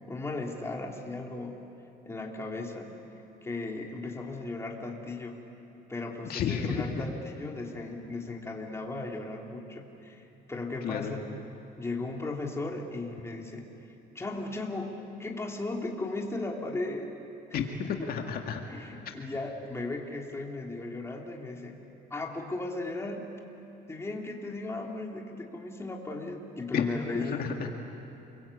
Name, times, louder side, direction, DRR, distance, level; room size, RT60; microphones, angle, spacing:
voice 1, 0.1-1.6 2.0-2.9 3.4-5.4 5.9-11.3 11.8-13.7 14.1-17.1 17.5-18.0 18.7-21.7 22.1-23.3 23.9-27.4, left 2 dB, 15° left, 0 dB, 3.3 m, -36 dB
voice 2, 6.2-6.9 10.8-11.1 17.5-18.6 26.7-26.9 27.1-27.7, left 7 dB, 65° left, 3 dB, 2.1 m, -31 dB
29.5 x 22.5 x 8.6 m, 3.0 s
cardioid pair, 110°, 17 cm